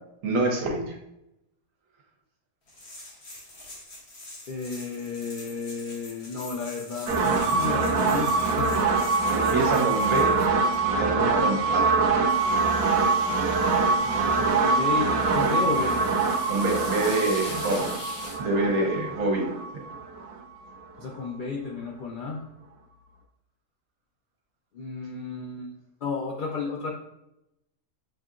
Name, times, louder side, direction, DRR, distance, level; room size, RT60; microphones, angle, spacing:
voice 1, 0.2-0.9 9.3-10.3 11.0-11.9 16.5-17.9 18.4-19.4, right 2 dB, 70° right, 0 dB, 1.3 m, -26 dB
sound 1, 2.7-10.8, left 1 dB, 50° left, 1.2 m, -44 dB
voice 2, 4.5-8.8 14.0-16.0 18.6-18.9 21.0-22.4 24.7-25.7 26.0-26.9, left 4 dB, 85° left, -1 dB, 0.4 m, -33 dB
sound 2, 7.1-20.7, right 4 dB, 90° right, 1.1 m, -24 dB
sound 3, 12.3-18.4, left 1 dB, 65° left, 1.7 m, -41 dB
5.8 x 2.7 x 2.4 m, 0.88 s
omnidirectional pair, 1.5 m